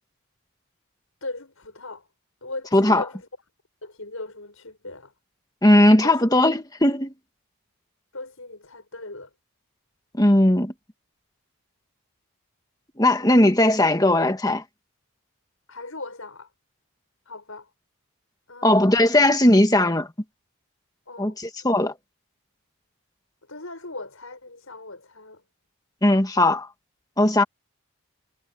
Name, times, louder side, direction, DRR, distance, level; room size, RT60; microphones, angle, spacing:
voice 1, 1.2-2.1 2.4-3.3 3.8-5.1 5.7-6.2 8.1-9.3 15.7-16.5 17.3-17.7 18.5-19.2 21.1-21.4 23.5-25.4, left 2 dB, 65° left, 6.5 m, -39 dB
voice 2, 2.7-3.0 5.6-7.1 10.2-10.7 13.0-14.6 18.6-20.1 21.2-21.9 26.0-26.7 27.2-27.4, left 1 dB, 15° left, 1.7 m, -18 dB
head